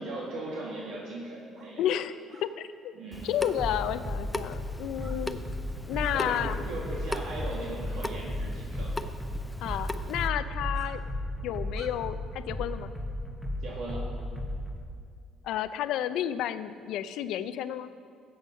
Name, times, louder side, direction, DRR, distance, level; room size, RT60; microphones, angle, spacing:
voice 1, 0.0-1.8 2.9-3.3 5.0-5.1 6.1-9.0 13.6-14.1, right 2 dB, 75° right, -5 dB, 2.2 m, -38 dB
sound 1, 1.5-1.7 2.3-2.5 3.4-3.8 4.9-5.2 5.7-6.5 6.9-7.0 7.9-8.0 8.8-8.9 9.6-9.8 10.2-10.3 10.7-10.9 11.7-11.9, right 3 dB, 40° right, 1.4 m, -49 dB
voice 2, 1.8-2.1 2.4-2.9 3.2-5.4 5.9-6.6 9.6-11.0 11.4-12.9 15.4-17.9, left 11 dB, 75° left, 12 dB, 0.5 m, -31 dB
Water tap faucet / Sink (filling or washing) / Drip, 3.1-10.3, left 1 dB, 10° left, 0.5 m, -39 dB
sound 2, 3.6-14.8, left 1 dB, 5° right, 1.4 m, -35 dB
15.0 x 8.0 x 5.5 m, 2.2 s
cardioid pair, 115°, 0 cm